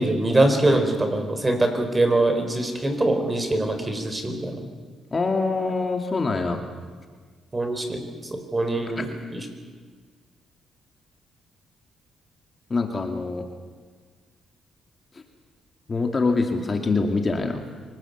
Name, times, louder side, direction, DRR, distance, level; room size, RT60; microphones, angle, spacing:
voice 1, 0.0-4.7 7.5-9.1 9.3-9.4, right 2 dB, 20° right, 6 dB, 4.4 m, -23 dB
voice 2, 5.1-6.6 9.0-9.1 12.7-13.5 15.1-15.2 15.9-17.6, left 3 dB, 30° left, 4 dB, 2.5 m, -24 dB
25.0 x 19.0 x 8.2 m, 1.5 s
cardioid pair, 90°, 0 cm